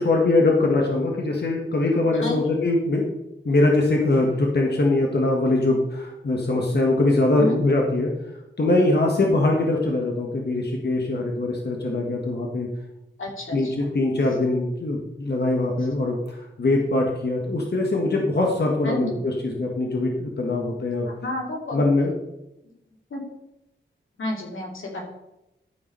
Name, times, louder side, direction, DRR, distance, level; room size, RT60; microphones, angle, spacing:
voice 1, 0.0-3.1 3.4-8.1 8.6-12.7 13.5-13.7 13.9-21.1 21.7-22.1, left 2 dB, 55° left, 0 dB, 1.5 m, -22 dB
voice 2, 2.2-2.5 7.4-7.6 13.2-14.0 15.8-15.9 18.8-19.2 20.7-20.8 21.0-21.9 23.1-23.2 24.2-25.0, left 2 dB, 90° left, -1 dB, 2.6 m, -31 dB
12.0 x 4.8 x 5.4 m, 0.90 s
wide cardioid pair, 90°, 20 cm